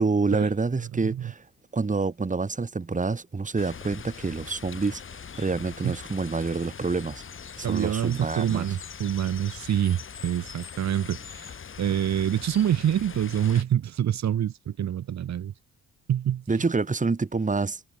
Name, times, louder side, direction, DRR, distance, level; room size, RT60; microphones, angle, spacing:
voice 1, 0.0-1.4 1.7-5.0 5.4-7.2 7.6-8.7 16.5-17.8, right 4 dB, 25° right, 4.2 m, -27 dB
voice 2, 0.9-1.3 5.8-5.9 7.6-11.5 11.8-15.5 16.1-16.4, right 10 dB, 65° right, 3.5 m, -26 dB
sound 1, 3.6-13.6, left 7 dB, 45° left, 2.9 m, -42 dB
cardioid pair, 90°, 30 cm